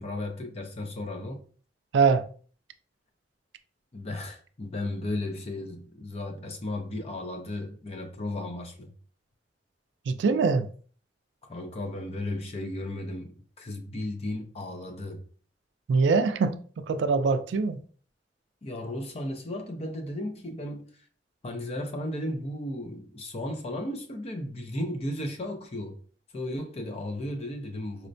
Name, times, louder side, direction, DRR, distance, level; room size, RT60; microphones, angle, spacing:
voice 1, 0.0-1.4 3.9-8.9 11.4-15.2 18.6-20.9 21.4-26.0 26.3-28.1, left 1 dB, 35° left, 0.6 m, -35 dB
voice 2, 1.9-2.2 10.1-10.7 15.9-17.8, right 4 dB, 80° right, 0.3 m, -23 dB
4.2 x 2.1 x 2.6 m
head